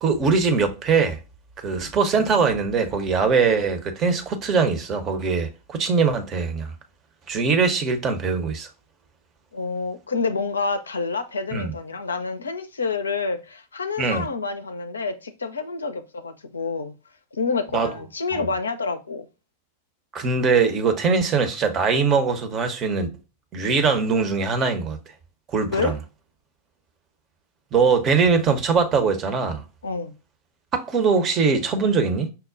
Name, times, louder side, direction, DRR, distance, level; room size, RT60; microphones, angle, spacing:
voice 1, 0.0-1.2 1.6-6.7 7.3-8.7 11.5-11.7 14.0-14.2 17.7-17.9 18.3-18.4 20.1-23.1 23.5-25.0 25.5-25.9 27.7-29.6 30.7-32.3, right 5 dB, 30° right, 0.7 m, -21 dB
voice 2, 9.5-16.9 17.3-19.3 25.7-26.0 29.8-30.1, left 4 dB, 75° left, 0.4 m, -28 dB
5.6 x 2.1 x 2.4 m
figure-of-eight pair, 90°, 0 cm